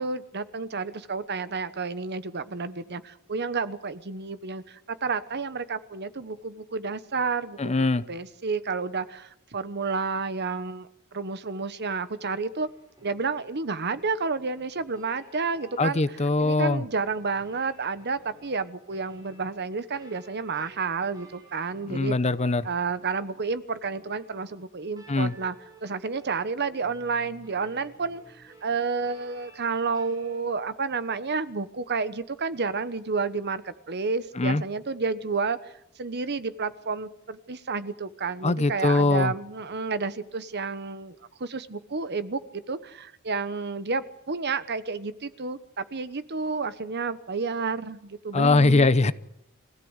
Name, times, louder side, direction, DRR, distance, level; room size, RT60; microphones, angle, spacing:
voice 1, 0.0-12.7 13.0-16.0 16.4-22.2 22.6-25.6 25.8-41.1 41.4-48.9, right 4 dB, 50° right, 13 dB, 1.1 m, -30 dB
voice 2, 7.6-8.0 15.8-16.8 21.9-22.7 25.1-25.3 34.4-34.6 38.4-39.3 48.3-49.1, left 3 dB, 30° left, 15 dB, 0.7 m, -22 dB
sound 1, 12.5-30.5, right 1 dB, 20° right, 6.7 m, -54 dB
25.0 x 16.0 x 8.1 m, 0.79 s
head